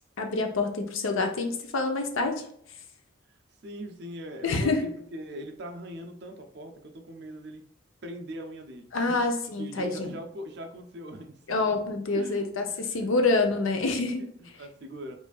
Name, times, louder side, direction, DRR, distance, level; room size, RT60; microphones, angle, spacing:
voice 1, 0.2-2.4 4.4-4.9 8.9-10.2 11.5-14.6, left 3 dB, 85° left, 5 dB, 0.7 m, -27 dB
voice 2, 3.6-7.6 8.0-9.2 9.6-11.7 12.1-13.0 14.2-15.1, equal, 55° right, 5 dB, 0.5 m, -41 dB
4.7 x 2.6 x 2.4 m, 0.67 s
head